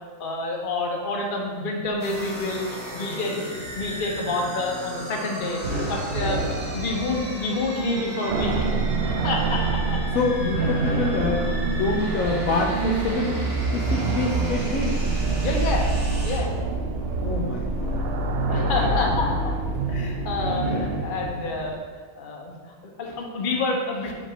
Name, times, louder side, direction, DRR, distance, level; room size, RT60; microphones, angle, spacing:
voice 1, 0.2-5.6 5.9-6.4 6.7-8.7 9.0-10.0 11.9-12.1 15.4-15.9 16.2-16.5 18.5-19.5 19.9-21.8 22.2-22.5 22.8-24.1, left 2 dB, 40° left, 0 dB, 0.9 m, -28 dB
sound 1, 2.0-16.4, equal, 35° right, 0.9 m, -36 dB
sound 2, 5.3-21.8, right 1 dB, 70° right, 1.8 m, -35 dB
sound 3, 8.3-21.4, right 3 dB, 85° right, 0.5 m, -26 dB
voice 2, 10.1-13.4 13.7-15.0 17.2-18.0, left 3 dB, 70° left, 0 dB, 1.0 m, -26 dB
5.2 x 3.7 x 4.9 m, 1.5 s
omnidirectional pair, 1.6 m